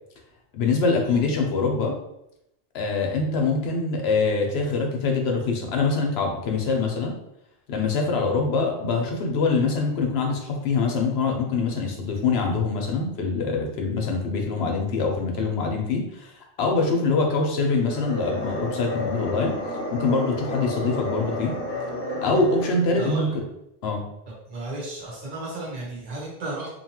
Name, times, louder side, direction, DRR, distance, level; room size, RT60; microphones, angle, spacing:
voice 1, 0.5-2.0 2.7-7.2 7.7-19.5 19.9-21.6 22.2-23.3 23.8-24.1, left 4 dB, 75° left, 1 dB, 0.9 m, -24 dB
sound 1, 17.7-23.0, equal, 45° left, 0.9 m, -31 dB
voice 2, 23.0-23.4 24.5-26.7, right 2 dB, 40° right, -5 dB, 1.0 m, -34 dB
2.8 x 2.3 x 2.9 m, 0.83 s
omnidirectional pair, 1.1 m